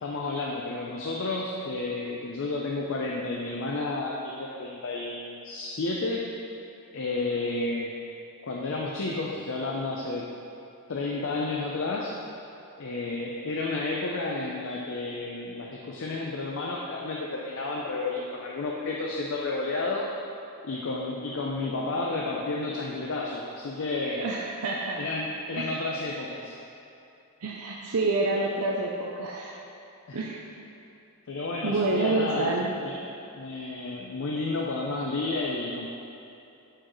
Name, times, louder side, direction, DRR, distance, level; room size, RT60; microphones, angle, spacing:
voice 1, 0.0-6.2 6.9-7.9 8.4-10.3 10.9-12.2 12.8-20.1 20.6-24.2 24.9-26.6 30.1-30.2 31.3-33.0 33.3-35.9, left 3 dB, 60° left, -2 dB, 0.5 m, -31 dB
voice 2, 24.2-25.0 25.5-25.8 27.4-29.5 30.1-30.5 31.6-32.7, right 2 dB, 80° right, -2 dB, 0.6 m, -28 dB
8.6 x 4.5 x 3.1 m, 2.8 s
head